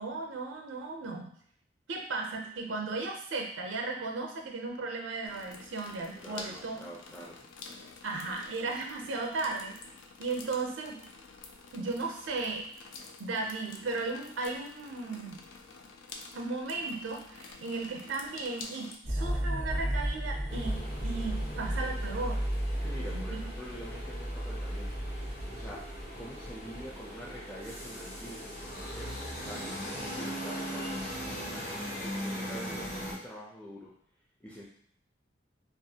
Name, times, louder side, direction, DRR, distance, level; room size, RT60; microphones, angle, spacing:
voice 1, 0.0-1.3 1.9-6.9 8.0-9.8 10.2-11.0 11.7-12.6 13.2-15.4 16.3-22.4 23.1-23.4, right 3 dB, 85° right, 2 dB, 0.5 m, -36 dB
sound 1, 5.2-19.0, left 4 dB, 75° left, 0.3 m, -49 dB
voice 2, 6.1-7.5 22.8-25.0 25.5-25.8 26.2-29.1 29.5-33.9 34.4-34.7, equal, 5° left, -6 dB, 0.4 m, -46 dB
sound 2, 19.0-25.8, equal, 40° left, 1.2 m, -33 dB
sound 3, 20.5-33.1, equal, 55° left, 1.1 m, -40 dB
2.4 x 2.3 x 2.7 m, 0.64 s
head